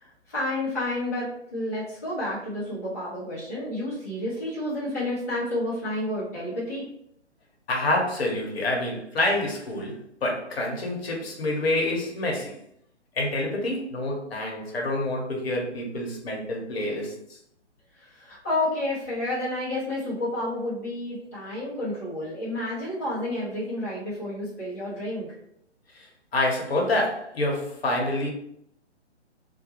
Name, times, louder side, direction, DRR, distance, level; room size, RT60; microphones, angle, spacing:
voice 1, 0.0-6.8 18.0-25.3, left 1 dB, 15° left, -11 dB, 0.4 m, -30 dB
voice 2, 7.7-12.6 13.1-17.1 25.9-26.1 26.3-28.3, left 1 dB, 60° left, 0 dB, 0.8 m, -27 dB
2.2 x 2.0 x 2.8 m, 0.72 s
figure-of-eight pair, 130°, 35 cm